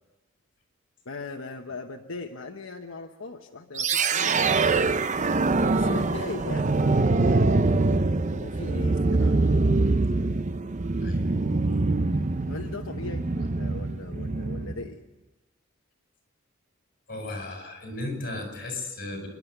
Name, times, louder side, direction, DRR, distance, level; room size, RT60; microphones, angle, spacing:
voice 1, 1.0-4.9 5.3-7.8 8.3-9.5 12.5-15.0, left 3 dB, 85° left, 3 dB, 1.1 m, -39 dB
sound 1, 3.7-14.9, right 3 dB, 35° right, 0.6 m, -24 dB
voice 2, 17.1-19.3, left 2 dB, 45° left, 2 dB, 7.6 m, -35 dB
28.5 x 12.0 x 8.0 m, 1.0 s
head